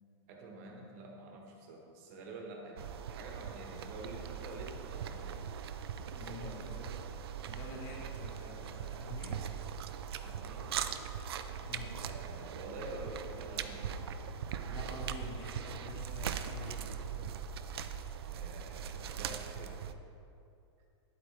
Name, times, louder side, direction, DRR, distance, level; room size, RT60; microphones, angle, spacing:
voice 1, 0.3-5.4 6.2-6.8 10.2-10.7 12.0-14.1 18.2-19.7, right 2 dB, 35° right, 0 dB, 1.3 m, -48 dB
Beeren - Essen und Pflücken, 2.8-19.9, right 8 dB, 60° right, 0.5 m, -40 dB
voice 2, 6.2-6.9 7.4-9.4 11.6-11.9 14.7-17.4, left 3 dB, 20° left, -2 dB, 1.2 m, -47 dB
10.0 x 8.4 x 3.3 m, 2.7 s
supercardioid pair, 180°, 15 cm